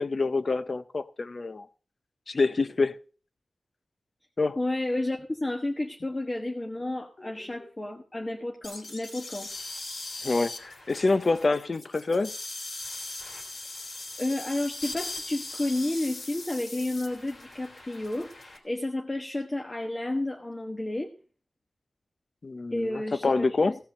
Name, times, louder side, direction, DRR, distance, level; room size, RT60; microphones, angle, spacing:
voice 1, 0.0-1.7 2.3-3.0 4.4-4.6 10.2-12.3 22.4-23.8, left 3 dB, 45° left, 0.7 m, -26 dB
voice 2, 4.6-9.5 14.2-21.1 22.7-23.8, left 1 dB, 25° left, 1.2 m, -31 dB
sound 1, 8.6-18.6, left 2 dB, 60° left, 3.2 m, -40 dB
16.5 x 5.7 x 6.6 m
wide cardioid pair, 130°, 0 cm